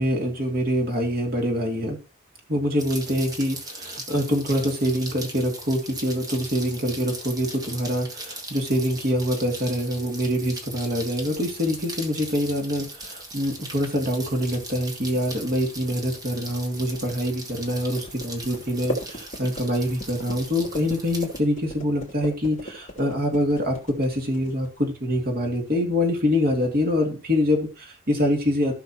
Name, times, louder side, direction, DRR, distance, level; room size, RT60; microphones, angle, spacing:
voice 1, 0.0-2.0 2.5-28.7, equal, 50° right, 2 dB, 2.6 m, -25 dB
Rain, 2.8-21.4, right 2 dB, 20° right, 1.5 m, -39 dB
sound 1, 11.1-24.8, left 1 dB, 40° left, 2.8 m, -39 dB
15.0 x 5.7 x 3.0 m, 0.34 s
head